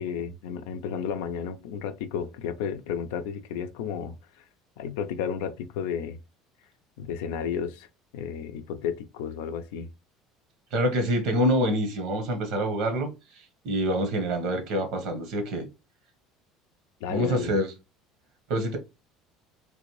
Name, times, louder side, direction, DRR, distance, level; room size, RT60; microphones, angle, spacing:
voice 1, 0.0-4.5 4.8-6.2 7.0-7.9 8.1-9.9 17.0-17.5, left 7 dB, 80° left, 0.4 m, -32 dB
voice 2, 10.7-15.7 17.1-17.7 18.5-18.8, equal, 70° right, 1.1 m, -26 dB
3.3 x 2.6 x 3.1 m
supercardioid pair, 90°, 0 cm